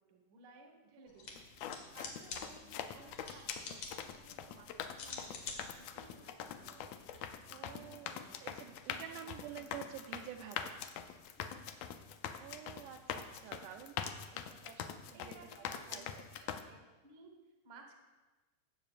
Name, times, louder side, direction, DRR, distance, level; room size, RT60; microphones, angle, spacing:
voice 1, 0.1-1.4 1.9-6.9 7.5-8.4 9.1-9.2 11.5-11.9 15.1-17.3 17.6-18.0, right 3 dB, 55° right, 2 dB, 1.3 m, -59 dB
sound 1, 1.1-7.2, left 4 dB, 65° left, 2.3 m, -49 dB
sound 2, 1.4-16.6, left 8 dB, 85° left, 1.5 m, -44 dB
voice 2, 7.5-10.8 12.4-16.5, right 10 dB, 80° right, 5 dB, 1.9 m, -50 dB
16.5 x 7.7 x 2.4 m, 1.2 s
omnidirectional pair, 3.7 m